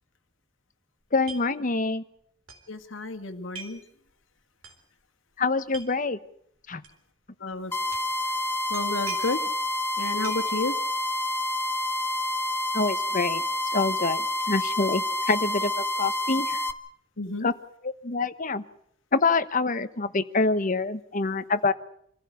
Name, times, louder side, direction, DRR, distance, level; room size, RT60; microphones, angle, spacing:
voice 1, 1.1-2.0 5.4-6.2 6.7-6.8 12.7-13.4 13.7-16.6 17.4-17.5 17.8-18.6 19.1-21.7, left 3 dB, 40° left, 1.1 m, -26 dB
sound 1, 1.2-1.4 1.7-1.8 2.5-2.6 3.5-3.8 4.6-4.7 5.6-5.9 6.8-6.9 7.9-8.1 8.7-9.5 10.2-10.6, right 4 dB, 90° right, 3.8 m, -41 dB
voice 2, 2.7-3.8 7.4-7.7 8.7-9.4 10.0-10.8 17.2-17.5, left 3 dB, 75° left, 1.9 m, -31 dB
sound 2, 7.7-16.7, left 1 dB, 10° left, 1.1 m, -28 dB
27.0 x 15.0 x 8.5 m
head